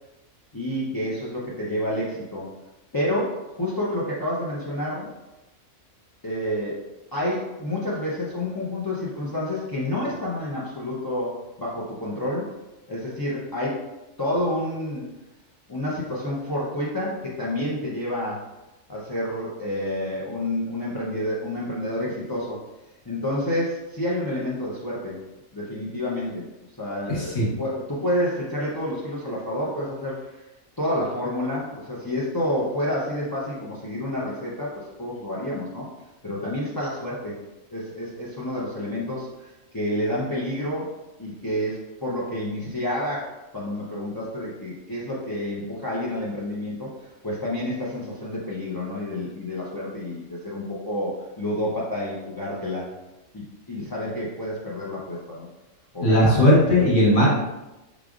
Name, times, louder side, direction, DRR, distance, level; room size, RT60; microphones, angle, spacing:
voice 1, 0.5-2.5 2.9-5.1 6.2-6.8 7.1-12.5 12.9-13.8 14.2-15.1 15.7-18.4 18.9-22.6 23.0-25.2 25.5-26.5 26.8-30.4 30.8-35.9 36.2-37.4 37.7-40.9 41.2-52.9 53.3-55.5 55.9-56.5, left 1 dB, 35° left, -7 dB, 0.3 m, -29 dB
voice 2, 27.1-27.5 56.0-57.3, left 1 dB, 80° left, -6 dB, 1.7 m, -17 dB
4.9 x 3.4 x 2.4 m, 0.99 s
omnidirectional pair, 1.4 m